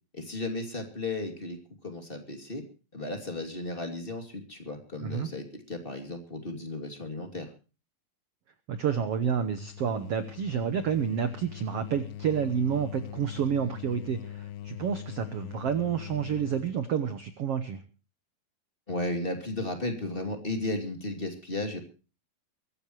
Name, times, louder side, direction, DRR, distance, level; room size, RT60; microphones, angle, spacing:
voice 1, 0.1-2.6 2.9-7.5 18.9-21.8, left 2 dB, 15° left, 4 dB, 2.2 m, -34 dB
voice 2, 8.7-17.8, right 7 dB, 90° right, 10 dB, 1.3 m, -29 dB
sound 1, 9.1-16.8, left 12 dB, 90° left, 2.9 m, -42 dB
23.0 x 14.5 x 3.1 m, 0.34 s
omnidirectional pair, 4.4 m